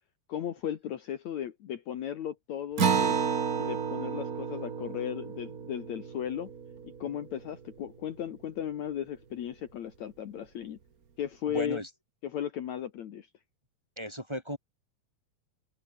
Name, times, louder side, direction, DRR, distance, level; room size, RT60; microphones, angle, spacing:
voice 1, 0.3-3.2 3.5-6.5 7.0-10.8 11.2-11.8 12.2-13.3, left 10 dB, 60° left, 2.6 m, -36 dB
Acoustic guitar, 2.8-7.7, right 6 dB, 40° right, 1.3 m, -31 dB
voice 2, 11.5-11.9 14.0-14.6, equal, 10° right, 4.6 m, -35 dB
omnidirectional pair, 3.9 m